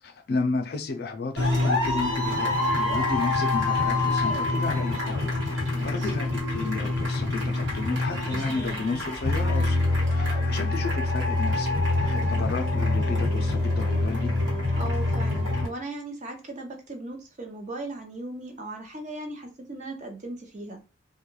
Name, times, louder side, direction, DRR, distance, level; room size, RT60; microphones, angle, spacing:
voice 1, 0.0-11.7 12.0-14.3, left 3 dB, 55° left, 0.4 m, -33 dB
sound 1, 1.4-15.7, left 2 dB, 85° right, 1.4 m, -25 dB
voice 2, 5.7-6.1 12.1-12.5 14.7-20.9, right 2 dB, 40° right, 0.6 m, -38 dB
2.3 x 2.2 x 3.0 m
head